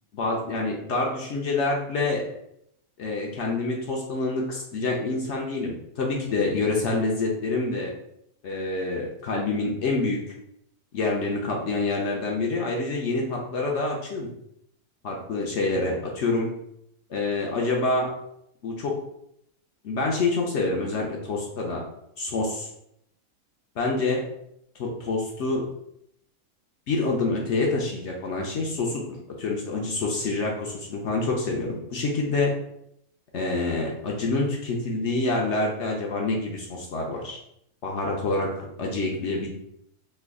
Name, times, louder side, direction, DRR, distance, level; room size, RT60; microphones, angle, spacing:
voice 1, 0.1-2.2 3.0-7.9 8.4-10.2 10.9-14.3 15.0-16.5 17.1-18.1 18.6-18.9 19.8-21.8 22.2-22.7 23.8-24.2 24.8-25.6 26.9-29.0 29.4-32.5 33.3-37.4 37.8-39.5, left 3 dB, 65° left, -1 dB, 0.8 m, -27 dB
3.3 x 2.3 x 3.5 m, 0.76 s
omnidirectional pair, 1.6 m